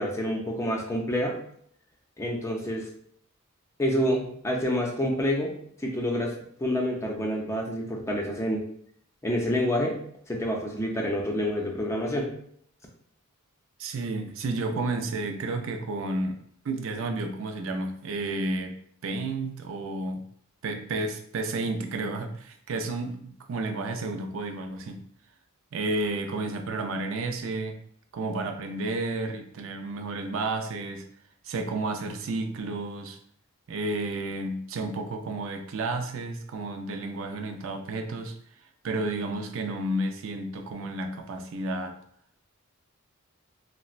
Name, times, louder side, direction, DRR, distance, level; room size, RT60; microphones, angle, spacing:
voice 1, 0.0-1.4 2.2-2.9 3.8-6.3 6.6-8.6 9.2-10.0 10.3-12.3, equal, 15° left, 0 dB, 0.5 m, -28 dB
voice 2, 13.8-16.4 16.6-18.8 19.0-20.2 20.6-25.0 25.7-27.8 28.1-31.1 31.4-33.2 33.7-38.3 38.8-42.0, right 2 dB, 60° right, 5 dB, 0.4 m, -31 dB
4.1 x 2.1 x 2.4 m, 0.65 s
head